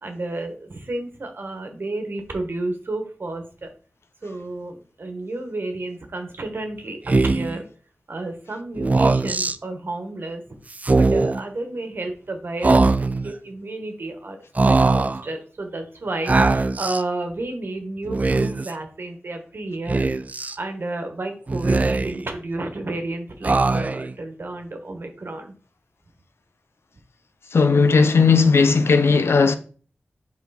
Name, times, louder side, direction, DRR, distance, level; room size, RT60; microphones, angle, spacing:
voice 1, 0.0-3.7 4.2-7.7 8.1-10.4 10.9-14.4 14.6-20.1 20.6-25.6, right 2 dB, 60° right, 1.3 m, -31 dB
Speech, 7.1-7.6 8.8-9.5 10.7-11.4 12.6-13.3 14.5-15.2 16.3-17.0 18.0-18.7 19.9-20.5 21.5-22.3 23.4-24.1, right 3 dB, 35° right, 0.4 m, -20 dB
voice 2, 27.5-29.5, left 4 dB, 85° left, 0.6 m, -16 dB
5.8 x 4.2 x 4.2 m
wide cardioid pair, 85°, 4 cm